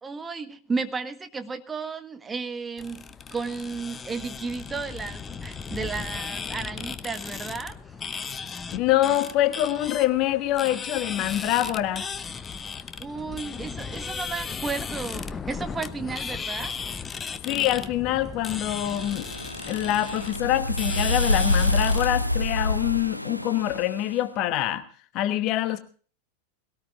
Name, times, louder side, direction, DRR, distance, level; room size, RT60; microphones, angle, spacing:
voice 1, 0.0-3.0 3.3-7.7 13.0-16.7, right 4 dB, 15° right, 8 dB, 1.6 m, -33 dB
sound 1, 2.8-22.1, left 5 dB, 20° left, 0.9 m, -36 dB
voice 2, 8.7-12.1 17.4-19.3 19.7-24.8 25.1-25.8, left 13 dB, 40° left, 11 dB, 1.2 m, -25 dB
sound 2, 18.8-24.1, left 2 dB, 90° left, 0.7 m, -27 dB
20.5 x 18.0 x 2.6 m, 0.42 s
figure-of-eight pair, 90°, 0 cm